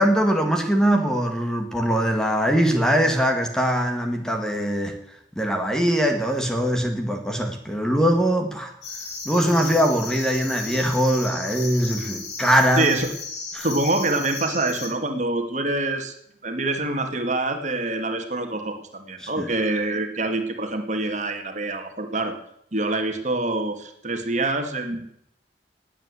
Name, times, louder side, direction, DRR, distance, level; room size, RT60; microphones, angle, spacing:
voice 1, 0.0-5.0 5.3-8.7 9.2-12.9 13.5-13.7 19.2-19.5, equal, 5° left, 4 dB, 1.8 m, -22 dB
sound 1, 8.8-14.9, left 4 dB, 75° left, 3.9 m, -35 dB
voice 2, 12.8-13.1 13.6-16.1 16.4-22.4 22.7-25.0, right 2 dB, 45° right, 5 dB, 2.0 m, -25 dB
19.5 x 8.3 x 8.1 m, 0.74 s
head